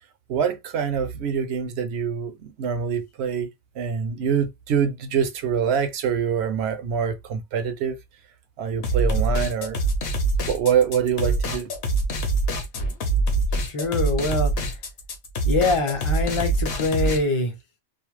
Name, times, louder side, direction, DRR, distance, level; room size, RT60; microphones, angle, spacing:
voice 1, 0.3-3.5 3.8-8.0 8.6-9.8 10.5-11.7, right 7 dB, 70° right, 0.8 m, -25 dB
sound 1, 8.8-17.2, right 2 dB, 60° left, 0.9 m, -24 dB
voice 2, 13.6-14.5 15.5-17.5, left 3 dB, 35° left, 0.6 m, -24 dB
2.5 x 2.0 x 3.1 m
omnidirectional pair, 1.2 m